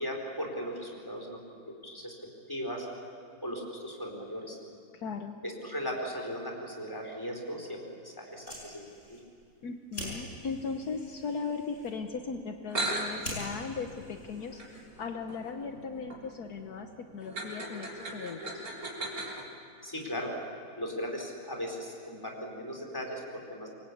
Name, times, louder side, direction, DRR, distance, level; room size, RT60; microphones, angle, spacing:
voice 1, 0.0-1.4 1.7-2.1 2.5-2.9 3.4-4.6 5.4-8.9 19.8-20.3 20.8-23.7, equal, 15° left, 0 dB, 4.4 m, -37 dB
voice 2, 4.9-5.4 9.6-18.6, left 5 dB, 70° left, 6 dB, 1.6 m, -38 dB
Fire, 8.2-15.1, left 1 dB, 50° left, 7.0 m, -46 dB
sound 1, 12.4-12.5 12.7-19.4, right 2 dB, 65° right, 4.3 m, -38 dB
26.5 x 23.0 x 8.5 m, 2.4 s
omnidirectional pair, 1.7 m